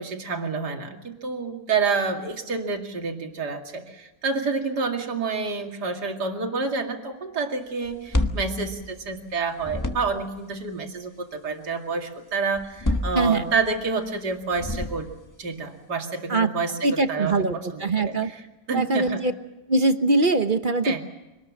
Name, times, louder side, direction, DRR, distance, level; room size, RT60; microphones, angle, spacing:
voice 1, 0.0-15.1 15.4-18.3 18.7-19.2 20.8-21.0, right 4 dB, 70° right, 3 dB, 2.9 m, -28 dB
sound 1, 7.8-9.3 9.6-10.4 12.5-13.8 14.5-15.3, left 1 dB, 10° left, 1.1 m, -28 dB
voice 2, 13.1-13.5 16.3-16.5 16.8-18.3 18.7-19.3 19.7-21.0, right 2 dB, 35° right, 8 dB, 1.0 m, -22 dB
25.0 x 19.5 x 7.4 m, 1.0 s
omnidirectional pair, 1.9 m